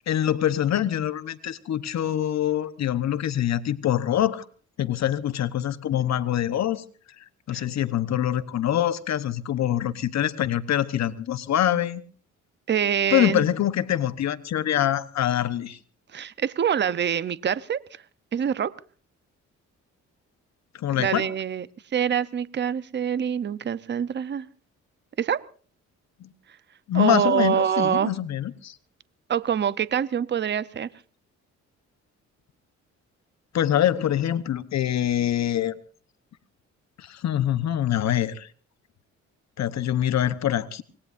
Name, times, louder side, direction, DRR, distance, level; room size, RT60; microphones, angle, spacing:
voice 1, 0.1-4.4 4.8-6.8 7.5-12.0 13.1-15.8 20.7-21.3 26.2-26.3 26.9-28.8 33.5-35.7 37.0-38.5 39.6-40.8, left 11 dB, 60° left, 13 dB, 1.1 m, -24 dB
voice 2, 12.7-13.4 16.1-17.8 18.3-18.7 21.0-21.7 21.9-24.5 25.2-25.4 26.9-28.1 29.3-30.9, right 8 dB, 35° right, 16 dB, 0.8 m, -25 dB
25.5 x 20.5 x 2.6 m, 0.41 s
cardioid pair, 90°, 30 cm